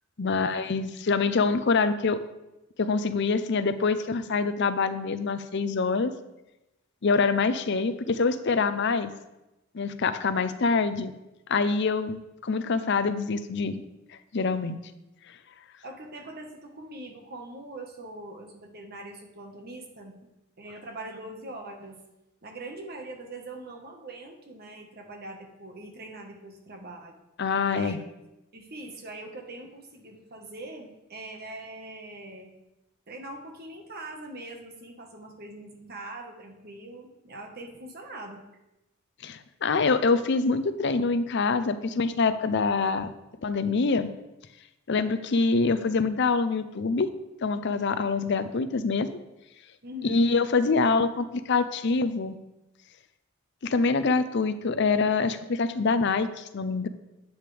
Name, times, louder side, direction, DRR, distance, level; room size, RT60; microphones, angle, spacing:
voice 1, 0.2-2.2 2.8-6.1 7.0-9.1 9.7-11.1 11.5-13.8 14.3-14.8 27.4-28.0 39.2-43.1 43.4-44.1 44.9-47.1 47.4-49.1 50.0-52.4 53.6-56.9, left 4 dB, 50° left, 12 dB, 0.5 m, -25 dB
voice 2, 15.8-20.2 20.6-22.0 22.4-27.2 27.7-28.0 28.5-32.5 33.1-38.4 49.8-50.2, right 2 dB, 45° right, 3 dB, 1.3 m, -42 dB
10.0 x 8.5 x 3.4 m, 0.96 s
head